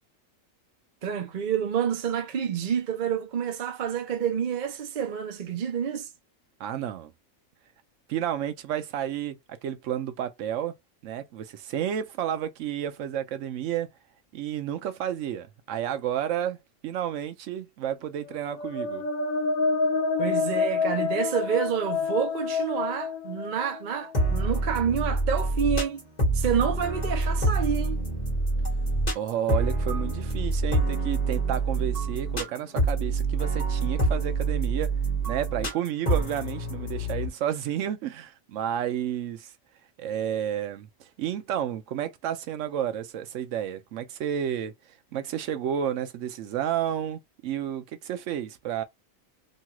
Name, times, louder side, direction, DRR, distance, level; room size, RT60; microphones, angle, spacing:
voice 1, 1.0-6.1 20.2-26.0 26.3-28.0, right 8 dB, 45° right, 0.7 m, -28 dB
voice 2, 6.6-7.1 8.1-10.7 11.0-13.9 14.3-16.6 16.8-19.0 29.1-34.9 35.3-39.5 40.0-40.9 41.2-44.7 45.1-48.8, right 10 dB, 75° right, 0.9 m, -31 dB
sound 1, 18.4-24.1, left 4 dB, 85° left, 1.1 m, -28 dB
sound 2, 24.1-37.3, right 2 dB, 30° left, 1.4 m, -26 dB
3.1 x 2.3 x 2.9 m
omnidirectional pair, 1.4 m